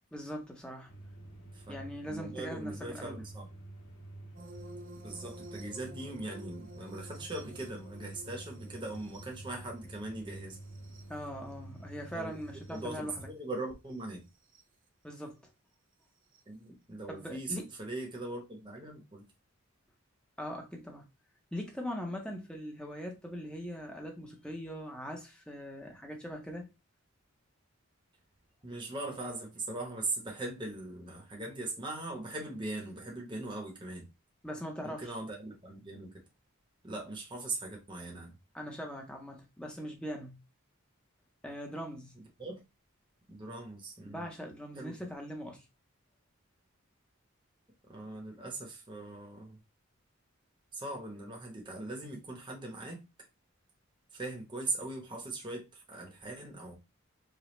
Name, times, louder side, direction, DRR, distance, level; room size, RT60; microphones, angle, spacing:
voice 1, 0.1-0.9 1.7-3.2 11.1-13.3 15.0-15.4 17.1-17.6 20.4-21.0 21.5-26.7 34.4-35.2 38.5-40.4 41.4-42.1 44.1-45.7, equal, 5° left, 0.8 m, -41 dB
sound 1, 0.9-13.3, right 2 dB, 85° left, 1.1 m, -49 dB
voice 2, 1.5-3.5 5.0-10.6 12.1-12.3 12.7-14.2 16.5-19.3 28.6-34.1 34.8-36.1 36.8-38.3 42.2-42.6 43.3-44.3 44.7-44.9 47.9-49.6 50.7-53.0 54.1-56.7, right 2 dB, 20° right, 1.0 m, -40 dB
sound 2, 4.4-13.0 14.4-14.6 16.3-16.4, right 1 dB, 40° right, 0.6 m, -53 dB
5.0 x 2.3 x 3.1 m
head